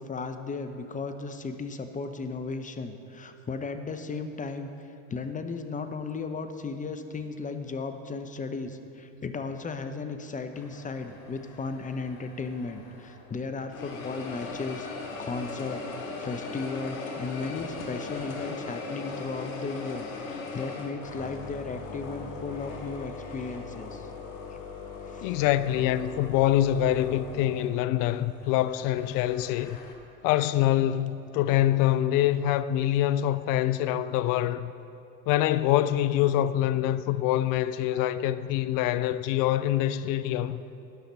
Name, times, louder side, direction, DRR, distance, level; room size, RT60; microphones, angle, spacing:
voice 1, 0.0-14.9 15.2-15.8 16.2-24.1 24.5-24.6 25.1-25.4, left 4 dB, 20° left, 0.7 m, -35 dB
sound 1, 10.5-13.3 13.7-29.9, left 4 dB, 75° left, 1.3 m, -40 dB
voice 2, 25.2-29.8 30.2-34.7 35.3-40.6, left 12 dB, 55° left, 0.4 m, -25 dB
11.5 x 5.8 x 5.4 m
hypercardioid pair, 75°, 41 cm